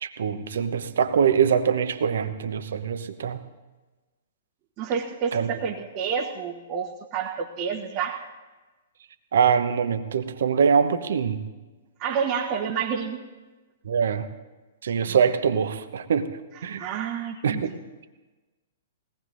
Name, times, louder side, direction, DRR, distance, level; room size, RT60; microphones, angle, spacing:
voice 1, 0.0-3.4 5.3-5.5 9.3-11.4 13.8-14.3 14.8-16.3 16.6-16.9 17.4-17.8, right 7 dB, 65° right, 9 dB, 1.0 m, -23 dB
voice 2, 4.8-8.2 12.0-13.2 15.1-15.2 16.6-17.6, right 7 dB, 35° right, -2 dB, 1.3 m, -29 dB
20.5 x 18.0 x 2.7 m, 1.2 s
figure-of-eight pair, 115°, 0 cm